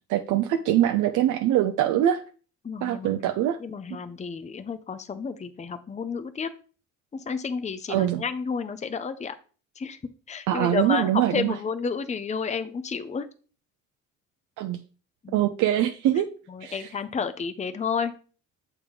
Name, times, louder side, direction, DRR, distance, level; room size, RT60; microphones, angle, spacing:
voice 1, 0.1-2.2 2.8-3.6 7.9-8.2 10.5-11.6 14.6-14.8 15.3-16.3 16.6-16.9, right 12 dB, 90° right, 6 dB, 0.6 m, -23 dB
voice 2, 2.6-3.2 3.6-6.5 7.1-9.4 9.8-10.0 10.3-13.3 15.2-15.4 16.5-18.1, left 5 dB, 25° left, 11 dB, 0.6 m, -31 dB
6.7 x 3.7 x 4.8 m, 0.38 s
cardioid pair, 90°, 30 cm